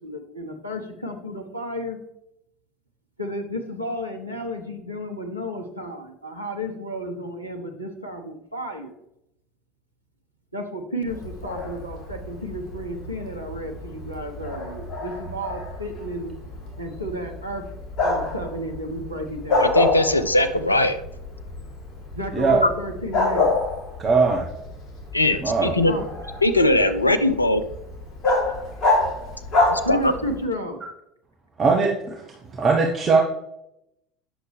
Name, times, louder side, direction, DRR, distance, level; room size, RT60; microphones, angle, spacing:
voice 1, 0.0-2.0 3.2-8.9 10.5-16.3 16.8-17.6 18.0-19.8 22.1-23.5 25.9-26.0 29.8-30.8, equal, 90° right, 2 dB, 1.0 m, -32 dB
Bark, 11.1-30.4, left 2 dB, 40° left, 3.1 m, -28 dB
voice 2, 19.6-21.0 22.6-22.7 25.1-25.9 26.4-27.6 29.7-30.1, left 1 dB, 85° left, 9 dB, 0.5 m, -20 dB
voice 3, 24.0-24.5 25.4-25.7 31.6-32.2 32.5-33.2, right 4 dB, 30° right, 0 dB, 1.2 m, -20 dB
8.9 x 6.5 x 3.3 m, 0.80 s
figure-of-eight pair, 65°, 0 cm